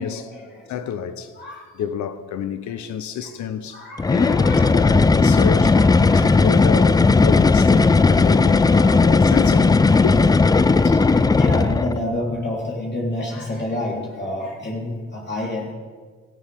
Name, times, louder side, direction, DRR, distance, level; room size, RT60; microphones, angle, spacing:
voice 1, 0.0-0.8 1.1-1.8 2.7-2.8 3.1-3.4 3.7-6.9 7.2-7.5 7.8-8.0 8.3-9.2 9.9-15.7, left 1 dB, 35° left, 3.6 m, -31 dB
voice 2, 0.7-1.3 1.8-6.9 7.2-8.7 9.0-10.2, left 8 dB, 70° left, 0.9 m, -29 dB
sound 1, 4.0-12.0, left 4 dB, 15° left, 0.3 m, -16 dB
18.0 x 14.5 x 3.6 m
cardioid pair, 90°, 30 cm